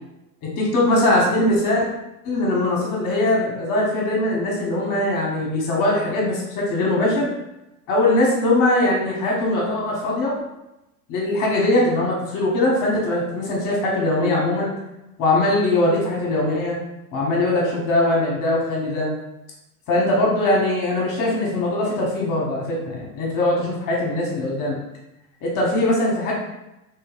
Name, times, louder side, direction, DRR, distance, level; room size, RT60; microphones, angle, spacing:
voice 1, 0.4-1.9 2.2-7.3 7.9-10.5 11.1-14.7 15.2-16.8 17.1-19.1 19.9-24.8 25.4-26.3, left 1 dB, 40° left, -3 dB, 1.1 m, -21 dB
3.2 x 3.0 x 2.4 m, 0.93 s
hypercardioid pair, 90°, 47 cm